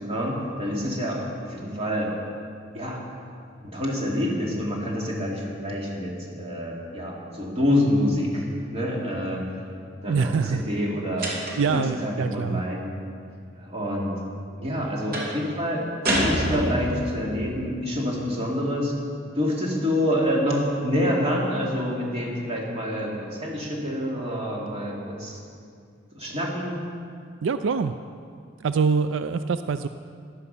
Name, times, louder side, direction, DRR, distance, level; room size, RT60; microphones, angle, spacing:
voice 1, 0.0-2.1 2.7-3.0 3.6-9.4 10.0-12.9 13.6-14.1 14.6-15.8 16.2-18.9 19.3-25.4 26.1-26.8, equal, 35° right, -3 dB, 2.7 m, -27 dB
voice 2, 10.1-10.6 11.2-12.6 27.4-27.9 28.6-29.9, right 5 dB, 80° right, 11 dB, 0.4 m, -25 dB
sound 1, 11.2-11.8 15.1-15.4 16.0-17.1, equal, 55° right, 2.7 m, -26 dB
14.5 x 11.5 x 5.5 m, 2.3 s
head